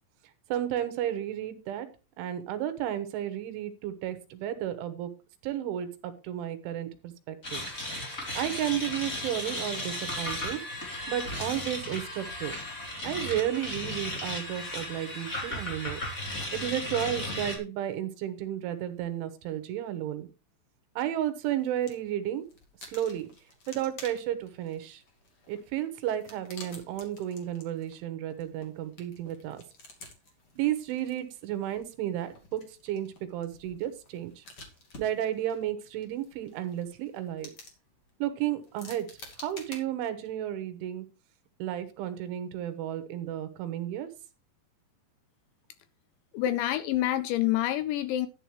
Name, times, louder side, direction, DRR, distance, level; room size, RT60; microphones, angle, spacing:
voice 1, 0.5-1.9 2.2-5.1 5.4-7.7 8.1-10.6 11.1-12.6 13.0-16.0 16.5-20.3 21.0-22.5 22.9-23.3 23.7-25.0 25.5-29.6 30.6-34.5 35.0-37.5 38.2-39.1 39.4-41.1 41.6-44.1, right 11 dB, 75° right, 11 dB, 3.6 m, -33 dB
sound 1, 7.4-17.6, left 1 dB, 20° left, 3.3 m, -35 dB
sound 2, 21.4-22.1 22.4-39.8, left 2 dB, 40° left, 2.3 m, -51 dB
voice 2, 46.3-48.3, left 13 dB, 80° left, 13 dB, 2.7 m, -27 dB
11.5 x 11.0 x 3.1 m, 0.31 s
omnidirectional pair, 5.7 m